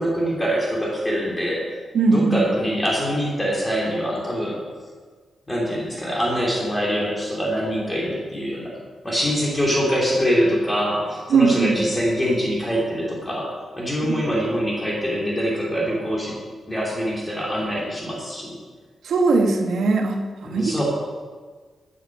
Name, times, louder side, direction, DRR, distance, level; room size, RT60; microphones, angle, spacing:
voice 1, 0.0-1.6 2.1-4.6 5.5-8.7 9.0-16.4 16.7-18.6 20.4-20.8, equal, 10° left, -3 dB, 2.6 m, -24 dB
voice 2, 1.9-2.4 11.3-11.8 14.0-14.1 19.0-20.8, right 4 dB, 85° right, 3 dB, 1.1 m, -20 dB
12.5 x 6.4 x 5.1 m, 1.5 s
wide cardioid pair, 130°, 0 cm